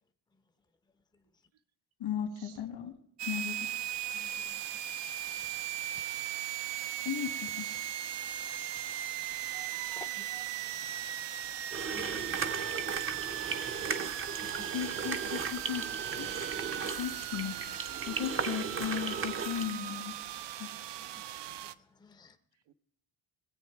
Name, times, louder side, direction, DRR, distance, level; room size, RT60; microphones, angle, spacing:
voice 1, 2.0-3.0 3.2-3.6 7.0-7.7 14.7-16.3 17.0-17.6 18.0-20.3 20.6-20.7, left 9 dB, 65° left, 2.2 m, -36 dB
sound 1, 3.2-21.7, right 12 dB, 60° right, 0.7 m, -38 dB
voice 2, 4.1-4.6 5.4-5.5 5.9-6.0 7.6-7.9 10.0-10.4 11.9-12.5 13.0-13.3 14.3-14.4 21.1-21.2 21.6-21.7 22.0-22.4, left 5 dB, 10° left, 0.7 m, -54 dB
voice 3, 9.5-10.5 16.2-17.1 17.7-19.7 22.7-22.8, right 10 dB, 75° right, 1.0 m, -54 dB
sound 2, 11.7-19.7, right 5 dB, 25° right, 0.8 m, -36 dB
20.5 x 8.4 x 4.6 m
cardioid pair, 140°, 49 cm